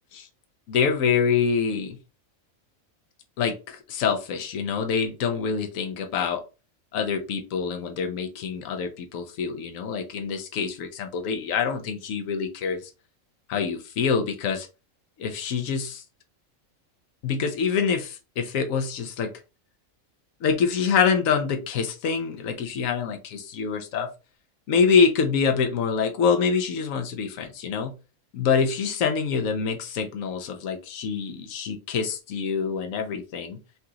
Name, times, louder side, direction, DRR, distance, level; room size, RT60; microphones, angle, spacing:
voice 1, 0.7-2.0 3.4-6.4 6.9-12.8 13.5-14.7 15.2-16.0 17.2-19.3 20.4-24.1 24.7-27.9 28.3-33.6, left 6 dB, 75° left, 5 dB, 1.1 m, -25 dB
5.7 x 2.5 x 2.8 m, 0.31 s
omnidirectional pair, 1.4 m